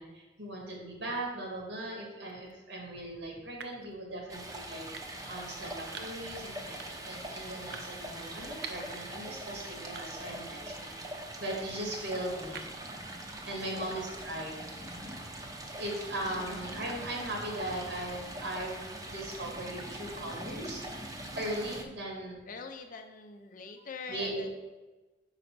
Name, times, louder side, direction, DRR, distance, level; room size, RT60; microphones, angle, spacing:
voice 1, 0.0-4.9 5.3-10.9 11.4-12.6 13.4-14.5 15.8-20.8 21.3-22.4 24.1-24.6, right 1 dB, 90° right, -1 dB, 1.9 m, -38 dB
sound 1, 2.3-2.5 3.6-3.9 4.9-5.4 5.9-6.3 6.8-7.1 7.7-9.0 9.4-9.5 10.0-10.4 10.8-13.0, right 6 dB, 65° right, 0.6 m, -47 dB
Stream, 4.3-21.8, right 1 dB, 20° right, 0.7 m, -42 dB
voice 2, 13.5-13.9 16.3-16.7 22.5-24.6, left 4 dB, 50° left, 5 dB, 0.5 m, -45 dB
5.2 x 4.0 x 6.0 m, 1.2 s
head